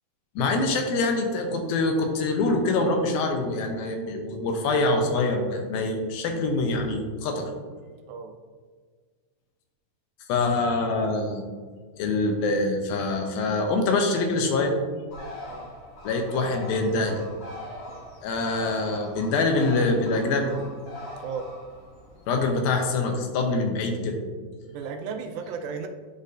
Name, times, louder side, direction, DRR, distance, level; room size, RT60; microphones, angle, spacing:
voice 1, 0.4-7.5 10.3-11.4 11.9-14.8 16.0-17.2 18.2-20.5 22.3-24.2, left 3 dB, 85° left, 3 dB, 2.5 m, -25 dB
Bird, 15.1-22.5, left 1 dB, 55° left, 2.3 m, -42 dB
voice 2, 24.7-25.9, right 6 dB, 85° right, 6 dB, 2.3 m, -35 dB
10.5 x 4.0 x 2.5 m, 1.5 s
omnidirectional pair, 4.2 m